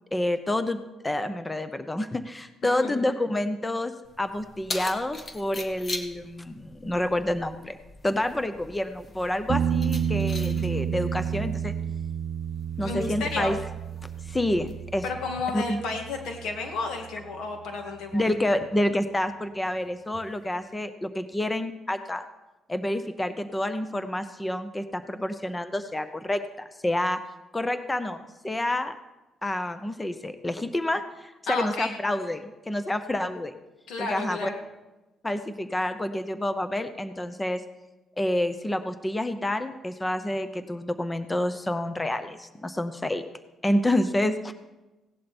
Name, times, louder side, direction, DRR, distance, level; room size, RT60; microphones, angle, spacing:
voice 1, 0.1-7.8 8.0-11.7 12.8-13.6 14.3-15.0 15.5-15.8 18.1-22.3 22.7-27.2 27.5-28.9 29.4-33.5 34.0-34.5 35.2-37.6 38.2-43.2 43.6-44.5, left 1 dB, 15° left, 11 dB, 0.8 m, -28 dB
Keys jangling, 4.0-15.1, left 2 dB, 35° left, 1.6 m, -42 dB
sound 1, 9.5-17.1 20.1-20.2, right 7 dB, 60° right, 0.5 m, -30 dB
voice 2, 12.8-13.5 15.0-18.3 31.5-31.9 33.9-34.6, left 3 dB, 80° left, 4 dB, 2.2 m, -32 dB
17.0 x 11.0 x 4.4 m, 1.1 s
cardioid pair, 90°, 0 cm